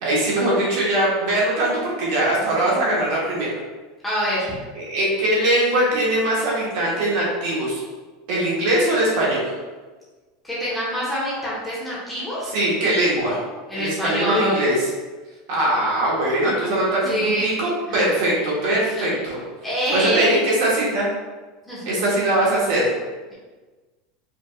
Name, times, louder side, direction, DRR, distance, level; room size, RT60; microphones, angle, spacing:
voice 1, 0.0-3.5 4.7-7.8 8.3-9.5 12.4-13.4 13.8-14.9 15.5-19.4 19.9-21.1 21.8-22.9, right 1 dB, 60° right, -5 dB, 1.5 m, -21 dB
voice 2, 4.0-4.5 10.4-12.5 13.7-14.6 17.0-17.5 17.9-18.1 18.6-19.1 19.6-20.4 21.7-21.9, equal, 5° left, -10 dB, 1.2 m, -25 dB
5.0 x 3.5 x 2.4 m, 1.3 s
supercardioid pair, 170°, 0 cm